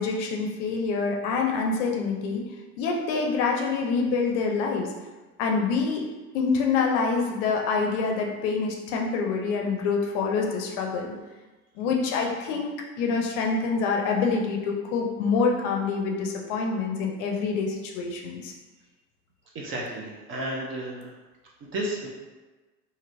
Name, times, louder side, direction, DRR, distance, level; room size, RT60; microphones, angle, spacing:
voice 1, 0.0-2.4 2.8-4.9 5.4-6.0 6.3-11.1 11.8-12.7 13.0-18.5, left 4 dB, 50° left, 1 dB, 0.6 m, -26 dB
voice 2, 19.5-21.1 21.6-22.1, right 1 dB, 30° right, -3 dB, 0.5 m, -32 dB
2.9 x 2.6 x 2.5 m, 1.2 s
hypercardioid pair, 80°, 47 cm